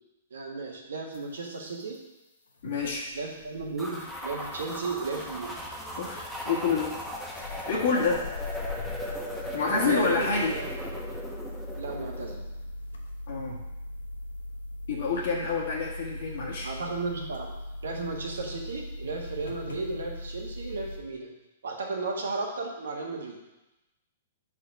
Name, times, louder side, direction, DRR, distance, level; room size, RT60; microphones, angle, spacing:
voice 1, 0.3-2.0 3.1-5.6 9.7-10.7 11.8-12.4 16.6-17.5 17.8-21.3 21.6-23.4, right 3 dB, 75° right, 1 dB, 1.3 m, -34 dB
sound 1, 1.1-1.2 1.7-2.0 2.6-3.8 5.0-5.1 6.0-6.4 6.7-6.8 7.0-21.0, left 1 dB, 85° left, 0.9 m, -40 dB
voice 2, 2.6-3.1 6.0-6.9 7.7-8.2 9.5-10.5 13.3-13.6 14.9-16.7, left 4 dB, 60° left, -3 dB, 1.4 m, -28 dB
sound 2, 3.8-12.3, left 1 dB, ahead, 1.1 m, -38 dB
4.7 x 4.3 x 5.7 m, 0.98 s
hypercardioid pair, 120°, 0 cm